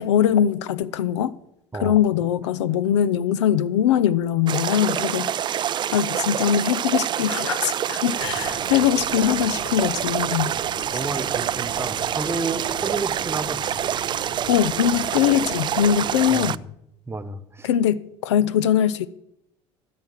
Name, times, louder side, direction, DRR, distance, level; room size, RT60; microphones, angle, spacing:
voice 1, 0.0-1.3 1.8-5.3 5.9-10.5 14.5-16.6 17.6-19.1, left 10 dB, 75° left, 0.5 m, -21 dB
sound 1, 4.5-16.6, right 10 dB, 30° right, 0.3 m, -26 dB
sound 2, 8.2-16.5, left 1 dB, 60° left, 2.0 m, -41 dB
voice 2, 10.9-13.7 16.3-16.7 17.1-17.7, right 3 dB, 15° right, 1.1 m, -31 dB
14.5 x 5.9 x 7.6 m
hypercardioid pair, 70°, 15 cm